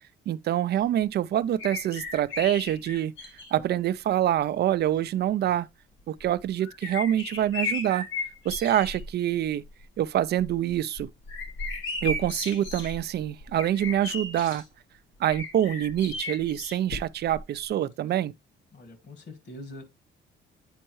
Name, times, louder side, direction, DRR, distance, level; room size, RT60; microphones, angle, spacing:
voice 1, 0.3-3.1 3.5-5.7 6.1-8.1 8.4-9.6 10.0-11.1 12.0-14.6 15.2-18.3, right 11 dB, 55° right, 0.4 m, -26 dB
sound 1, 1.6-3.6 4.5-4.6 6.2-9.1 9.4-9.8 10.2-14.6 15.3-17.4 17.7-17.8, left 3 dB, 85° left, 1.4 m, -35 dB
voice 2, 18.7-19.8, left 1 dB, 60° left, 1.8 m, -43 dB
8.7 x 4.4 x 3.0 m
cardioid pair, 90°, 20 cm